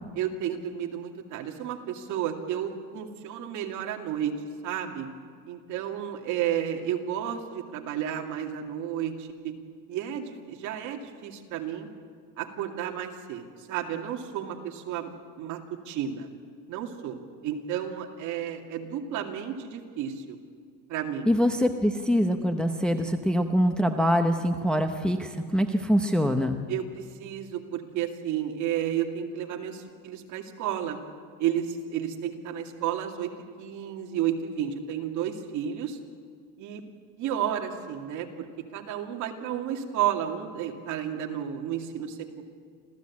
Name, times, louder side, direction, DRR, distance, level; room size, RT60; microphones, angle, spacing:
voice 1, 0.1-4.4 4.6-5.1 5.4-9.5 9.9-11.9 12.4-15.6 15.9-16.3 16.7-20.4 20.9-21.3 26.7-31.0 31.4-33.3 33.6-36.0 36.6-36.8 37.2-42.4, right 10 dB, 60° right, 3 dB, 2.5 m, -32 dB
voice 2, 21.3-26.6, equal, 5° left, 4 dB, 0.8 m, -24 dB
26.5 x 16.0 x 8.5 m, 2.1 s
cardioid pair, 165°, 34 cm